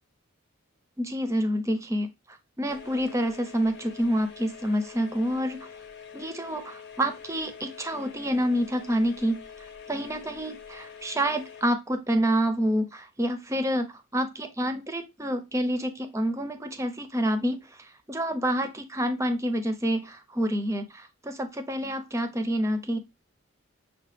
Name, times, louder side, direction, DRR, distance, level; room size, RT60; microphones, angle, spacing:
voice 1, 1.0-5.7 6.1-23.0, equal, 15° right, 8 dB, 0.5 m, -28 dB
sound 1, 2.7-11.6, left 7 dB, 55° left, 0.8 m, -45 dB
6.5 x 2.2 x 3.3 m, 0.23 s
head